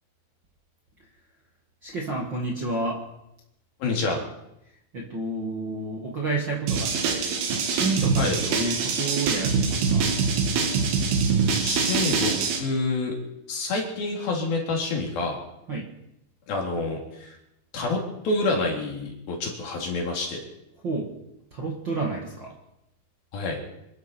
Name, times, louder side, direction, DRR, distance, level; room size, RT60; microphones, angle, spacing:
voice 1, 1.8-3.0 4.9-10.1 15.7-15.9 20.8-21.1 21.5-22.5, right 2 dB, 40° right, -2 dB, 1.8 m, -30 dB
voice 2, 3.8-4.2 8.2-8.4 11.4-13.1 13.5-15.4 16.5-17.3 17.7-20.4 23.3-23.6, left 3 dB, 65° left, 0 dB, 4.9 m, -28 dB
sound 1, 6.7-12.6, right 5 dB, 75° right, 3.9 m, -24 dB
27.0 x 11.5 x 4.5 m, 0.85 s
omnidirectional pair, 4.6 m